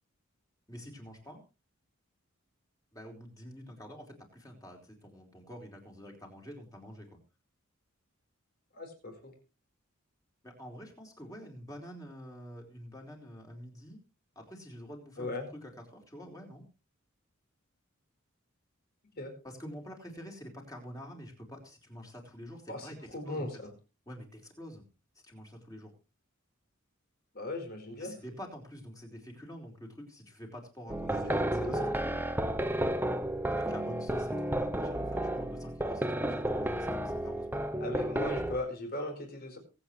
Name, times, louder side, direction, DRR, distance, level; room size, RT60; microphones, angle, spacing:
voice 1, 0.7-1.4 2.9-7.2 10.4-14.0 14.4-15.3 15.6-16.6 19.4-23.0 23.3-23.5 24.1-24.8 25.2-25.9 28.0-32.2 33.5-37.6, equal, 15° left, 1 dB, 4.2 m, -47 dB
voice 2, 8.7-9.3 15.2-15.4 19.2-19.3 22.7-23.7 27.3-28.2 31.2-31.8 37.8-39.6, left 2 dB, 45° left, 4 dB, 4.6 m, -38 dB
sound 1, 30.9-38.6, right 1 dB, 10° right, 0.8 m, -32 dB
23.0 x 8.8 x 3.3 m, 0.31 s
head